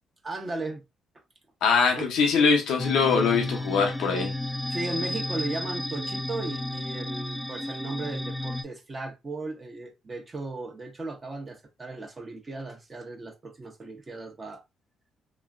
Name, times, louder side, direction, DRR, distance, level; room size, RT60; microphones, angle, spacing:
voice 1, 0.2-0.8 2.0-2.1 3.1-3.6 4.7-14.6, right 2 dB, 35° right, 1.0 m, -36 dB
voice 2, 1.6-4.3, left 5 dB, 80° left, 0.7 m, -22 dB
sound 1, 2.8-8.6, left 1 dB, ahead, 0.5 m, -32 dB
3.0 x 2.1 x 2.5 m
supercardioid pair, 60°, 0 cm